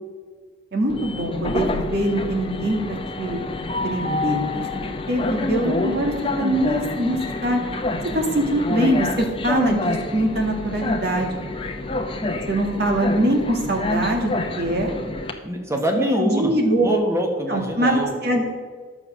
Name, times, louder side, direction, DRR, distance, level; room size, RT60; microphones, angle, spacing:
voice 1, 0.7-3.4 3.8-7.6 8.1-11.4 12.5-14.9 15.9-16.9 17.5-18.4, right 1 dB, 50° right, 2 dB, 1.8 m, -23 dB
Train, 0.9-15.3, left 2 dB, 25° left, 0.8 m, -27 dB
voice 2, 15.4-16.5 16.8-18.1, equal, 15° right, 2 dB, 1.3 m, -24 dB
11.0 x 7.2 x 6.1 m, 1.5 s
head